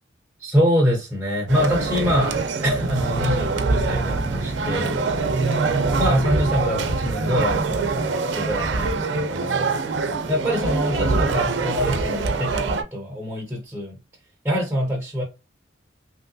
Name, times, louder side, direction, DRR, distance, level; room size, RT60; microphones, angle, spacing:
voice 1, 0.4-5.5 6.0-7.9 8.3-9.7 10.3-13.9 14.4-15.2, equal, 10° right, 0.6 m, -25 dB
sound 1, 1.5-12.8, right 3 dB, 75° right, 0.5 m, -24 dB
3.2 x 2.7 x 2.6 m
head